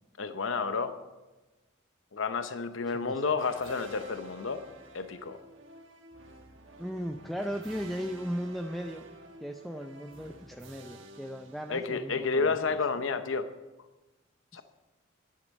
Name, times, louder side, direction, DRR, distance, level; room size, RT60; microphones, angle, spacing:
voice 1, 0.2-0.9 2.1-4.6 4.9-5.4 11.7-13.5 14.5-14.6, left 4 dB, 70° left, 10 dB, 0.8 m, -30 dB
sound 1, 3.4-12.2, right 2 dB, 65° right, 1.3 m, -51 dB
voice 2, 6.8-9.0 9.4-12.6, equal, ahead, 4 dB, 0.5 m, -37 dB
11.0 x 10.5 x 5.3 m, 1.1 s
head